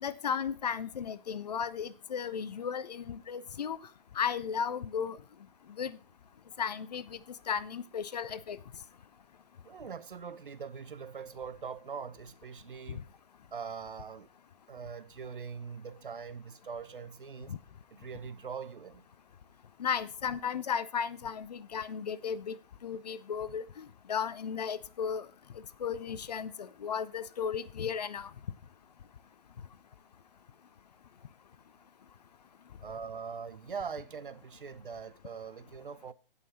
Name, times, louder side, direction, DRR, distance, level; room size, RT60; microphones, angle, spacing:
voice 1, 0.0-3.8 4.2-5.2 5.8-6.0 6.6-7.2 7.5-8.6 17.5-17.6 19.8-22.6 22.8-25.3 25.8-28.3, left 7 dB, 45° left, 0.6 m, -35 dB
voice 2, 9.6-13.1 13.5-14.3 14.7-17.5 17.9-19.0 32.8-36.1, right 6 dB, 60° right, 1.0 m, -42 dB
16.5 x 5.7 x 4.4 m
figure-of-eight pair, 130°, 29 cm